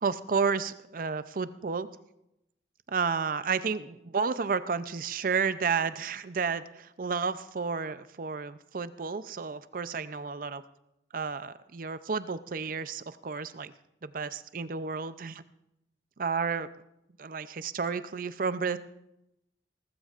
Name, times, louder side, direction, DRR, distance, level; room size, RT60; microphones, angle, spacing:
voice 1, 0.0-1.9 2.9-10.6 11.1-13.7 14.0-15.4 16.2-16.7 17.2-18.8, right 5 dB, 50° right, 14 dB, 0.5 m, -31 dB
18.5 x 15.0 x 2.5 m, 0.86 s
head